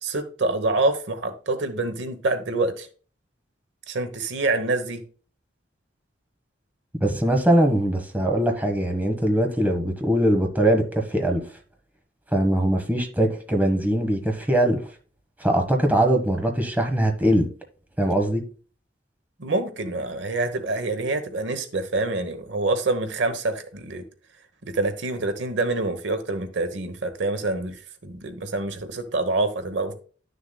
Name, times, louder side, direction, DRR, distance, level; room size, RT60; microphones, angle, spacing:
voice 1, 0.0-2.9 3.9-5.0 19.4-24.0 24.6-29.9, right 2 dB, 75° right, 1.0 m, -26 dB
voice 2, 7.0-11.4 12.3-14.8 15.4-17.5 18.0-18.4, right 1 dB, 10° right, 1.2 m, -21 dB
11.5 x 6.6 x 2.2 m
head